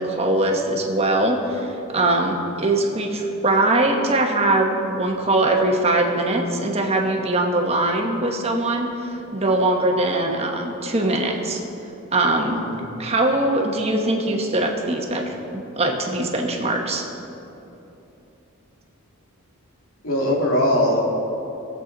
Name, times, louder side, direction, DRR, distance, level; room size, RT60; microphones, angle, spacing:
voice 1, 0.0-11.6 12.1-12.6 13.0-17.1, right 2 dB, 30° right, 1 dB, 1.2 m, -22 dB
voice 2, 12.5-12.9 20.0-21.1, left 1 dB, 65° left, -2 dB, 2.2 m, -21 dB
19.0 x 7.7 x 4.0 m, 3.0 s
head